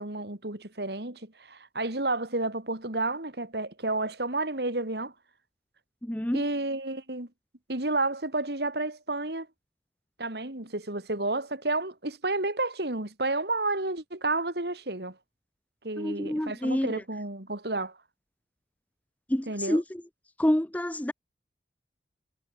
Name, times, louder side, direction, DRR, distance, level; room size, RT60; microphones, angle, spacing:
voice 1, 0.0-5.1 6.3-7.3 7.7-9.5 10.2-15.1 15.8-17.9 19.5-19.8, right 2 dB, 65° right, 3.1 m, -31 dB
voice 2, 6.0-6.4 16.0-16.9 19.3-20.0 20.4-21.1, left 1 dB, 10° left, 0.6 m, -28 dB
head